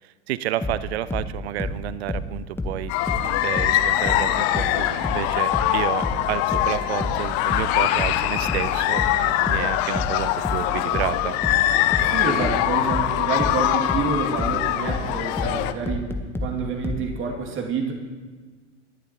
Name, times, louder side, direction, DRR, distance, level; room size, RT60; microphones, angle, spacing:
voice 1, 0.3-2.9 3.4-9.0 9.4-11.4, right 13 dB, 60° right, 17 dB, 0.6 m, -30 dB
sound 1, 0.6-17.1, left 2 dB, 5° left, 1.2 m, -29 dB
sound 2, 2.9-15.7, left 13 dB, 40° left, 0.8 m, -23 dB
voice 2, 12.0-16.1 16.4-17.9, right 5 dB, 35° right, 1 dB, 2.4 m, -28 dB
27.5 x 11.5 x 3.0 m, 1.4 s
figure-of-eight pair, 85°, 36 cm